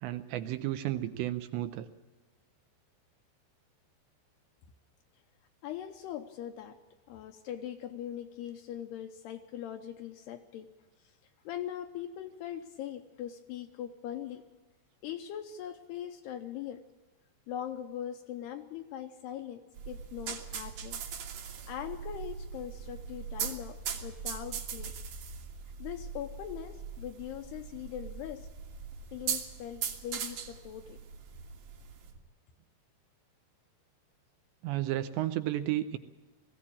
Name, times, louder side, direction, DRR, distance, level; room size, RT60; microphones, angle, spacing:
voice 1, 0.0-1.9 34.6-36.0, right 14 dB, 80° right, 10 dB, 2.7 m, -32 dB
voice 2, 5.6-6.8 7.1-10.7 11.0-11.1 11.4-14.5 15.0-16.8 17.5-21.1 21.7-24.9 25.8-28.5 29.1-31.0, left 10 dB, 80° left, 6 dB, 2.6 m, -41 dB
sound 1, 19.8-32.2, right 7 dB, 55° right, 3.1 m, -40 dB
19.5 x 16.0 x 8.5 m, 1.2 s
omnidirectional pair, 5.5 m